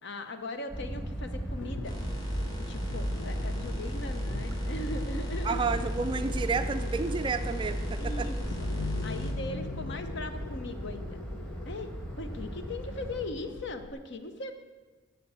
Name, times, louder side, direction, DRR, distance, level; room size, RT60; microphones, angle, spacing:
voice 1, 0.0-2.0 2.5-5.6 8.0-8.7 9.0-11.2 11.6-14.6, left 2 dB, 60° left, 8 dB, 0.8 m, -39 dB
sound 1, 0.7-13.3, equal, 5° left, 1.1 m, -39 dB
sound 2, 1.6-13.9, left 5 dB, 85° left, 0.4 m, -43 dB
sound 3, 1.8-9.3, equal, 20° left, 1.4 m, -34 dB
voice 2, 5.4-8.3, right 4 dB, 25° right, 10 dB, 0.3 m, -31 dB
8.0 x 6.8 x 6.8 m, 1.3 s
head